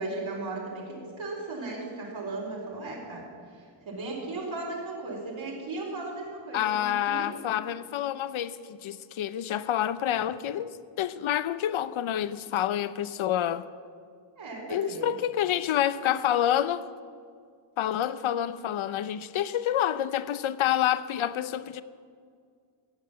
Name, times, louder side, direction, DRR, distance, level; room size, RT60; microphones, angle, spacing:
voice 1, 0.0-3.3 3.5-7.3 14.4-15.1, right 2 dB, 70° right, 4.3 m, -36 dB
voice 2, 6.5-13.7 14.7-16.9 17.8-21.8, left 11 dB, 75° left, 0.7 m, -28 dB
16.0 x 7.7 x 8.9 m
wide cardioid pair, 155°, 49 cm